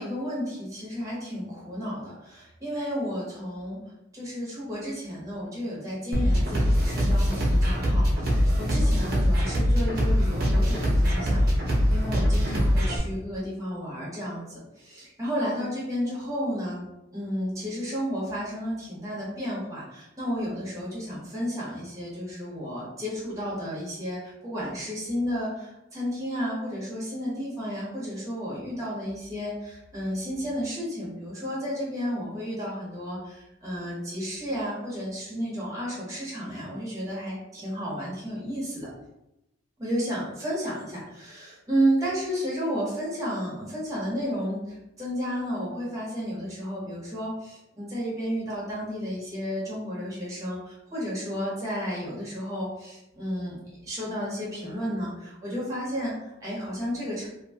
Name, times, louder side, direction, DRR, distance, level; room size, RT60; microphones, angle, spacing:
voice 1, 0.0-3.8 4.1-16.8 17.1-38.9 39.8-57.3, equal, 15° right, -7 dB, 1.0 m, -32 dB
sound 1, 6.1-13.0, equal, 50° right, 0.7 m, -22 dB
2.7 x 2.2 x 2.8 m, 0.89 s
head